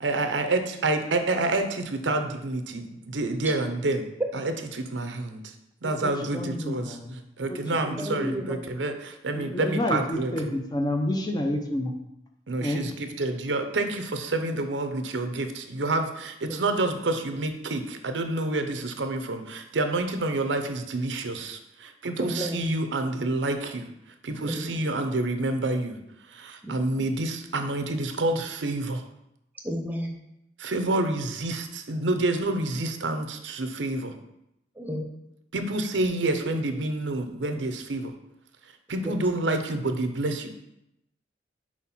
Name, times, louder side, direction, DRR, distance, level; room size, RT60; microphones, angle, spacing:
voice 1, 0.0-4.1 4.3-5.5 5.8-7.0 7.4-10.5 12.5-23.9 24.2-26.0 26.3-29.0 30.6-34.1 35.5-38.1 38.9-40.5, right 2 dB, 85° right, 7 dB, 0.7 m, -28 dB
voice 2, 6.0-7.2 7.5-8.6 9.3-11.9 12.6-12.8, left 1 dB, 25° left, 3 dB, 0.6 m, -30 dB
voice 3, 8.0-8.6 16.5-16.6 22.2-22.6 24.4-24.7 26.6-26.7 29.6-30.1 34.8-35.1 39.0-39.1, equal, 10° right, 2 dB, 0.8 m, -32 dB
4.6 x 4.3 x 5.6 m, 0.83 s
head